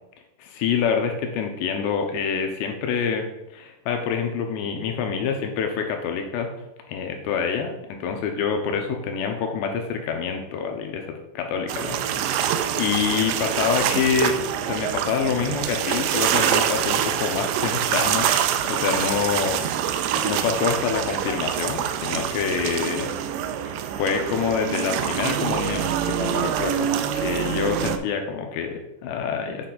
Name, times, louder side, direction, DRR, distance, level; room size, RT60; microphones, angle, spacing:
voice 1, 0.4-3.3 3.5-6.5 6.9-12.4 12.8-18.3 18.6-19.7 20.2-23.1 23.6-26.9 27.2-29.7, left 6 dB, 80° left, 4 dB, 2.8 m, -26 dB
sound 1, 11.7-28.0, right 9 dB, 80° right, 2.7 m, -25 dB
7.2 x 6.8 x 3.9 m, 0.89 s
omnidirectional pair, 5.3 m